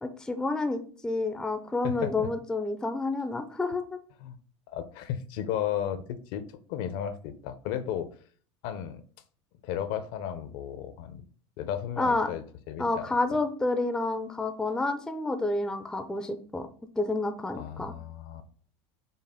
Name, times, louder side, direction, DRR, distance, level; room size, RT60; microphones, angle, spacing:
voice 1, 0.0-3.9 12.0-12.3 12.8-16.7 17.0-17.9, left 2 dB, 5° left, 8 dB, 0.4 m, -29 dB
voice 2, 1.8-2.3 4.2-4.4 4.7-6.4 6.7-8.1 8.6-9.0 9.6-11.3 11.6-13.1 17.5-18.4, left 9 dB, 65° left, 10 dB, 0.6 m, -34 dB
5.4 x 2.1 x 3.6 m, 0.43 s
supercardioid pair, 110°, 15 cm